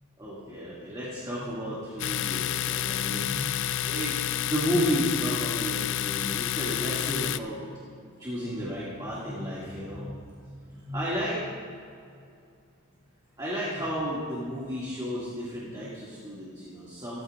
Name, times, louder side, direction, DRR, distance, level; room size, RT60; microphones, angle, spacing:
voice 1, 0.2-7.6 8.1-11.4 13.4-17.2, equal, 20° right, -8 dB, 2.3 m, -33 dB
Domestic sounds home sounds, 2.0-7.4, left 11 dB, 55° left, 0.3 m, -29 dB
16.0 x 14.0 x 2.5 m, 2.4 s
head